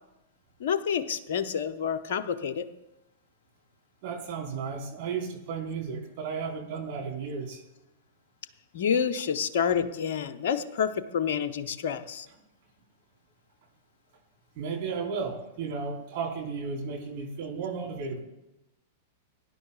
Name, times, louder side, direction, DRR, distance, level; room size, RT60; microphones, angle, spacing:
voice 1, 0.6-2.7 8.7-12.3, left 7 dB, 60° left, 9 dB, 0.7 m, -28 dB
voice 2, 4.0-7.6 14.5-18.2, right 5 dB, 50° right, -2 dB, 4.5 m, -34 dB
22.0 x 10.5 x 2.4 m, 0.92 s
figure-of-eight pair, 100°, 0 cm